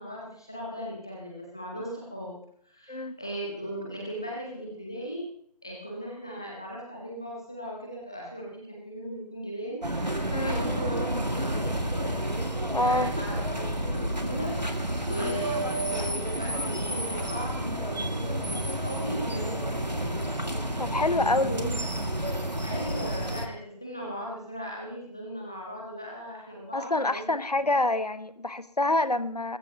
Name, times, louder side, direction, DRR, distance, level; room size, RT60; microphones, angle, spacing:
voice 1, 0.0-2.4 2.7-5.3 5.6-9.8 10.3-12.1 12.8-14.6 15.1-20.3 21.0-21.8 22.6-27.9, right 1 dB, 5° left, -2 dB, 0.7 m, -37 dB
sound 1, 9.8-23.5, right 1 dB, 90° right, 2.1 m, -30 dB
voice 2, 10.3-10.6 12.7-13.1 15.2-15.3 20.8-21.6 26.7-29.6, left 2 dB, 70° left, 14 dB, 1.1 m, -27 dB
20.5 x 15.0 x 2.9 m, 0.62 s
figure-of-eight pair, 160°, 21 cm